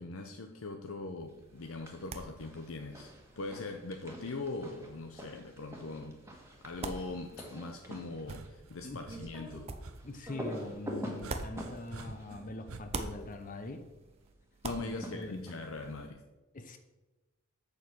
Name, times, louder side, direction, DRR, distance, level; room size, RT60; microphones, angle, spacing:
voice 1, 0.0-6.2 6.6-9.7 14.6-16.2, left 3 dB, 75° left, 0.7 m, -41 dB
sound 1, 1.2-12.4 12.7-16.1, right 3 dB, 30° right, 0.7 m, -47 dB
sound 2, 1.6-2.1 2.4-13.4 14.6-15.9, equal, 15° right, 1.5 m, -46 dB
sound 3, 8.1-14.2 15.6-16.0, right 3 dB, 90° right, 0.7 m, -50 dB
voice 2, 10.0-13.9 14.8-15.4 16.5-16.8, left 2 dB, 40° left, 0.7 m, -42 dB
7.3 x 6.9 x 6.1 m
head